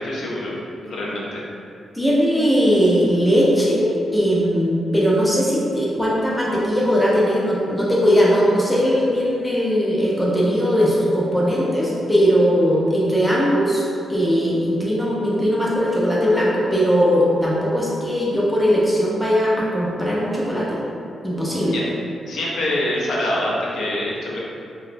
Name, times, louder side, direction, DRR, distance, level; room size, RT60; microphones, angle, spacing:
voice 1, 0.0-1.4 21.6-21.9 22.3-24.4, left 1 dB, 70° left, -5 dB, 0.5 m, -25 dB
voice 2, 1.9-13.8 14.1-20.8 21.2-21.8, equal, 5° left, -6 dB, 0.3 m, -19 dB
2.8 x 2.1 x 2.5 m, 2.4 s
wide cardioid pair, 170°, 0 cm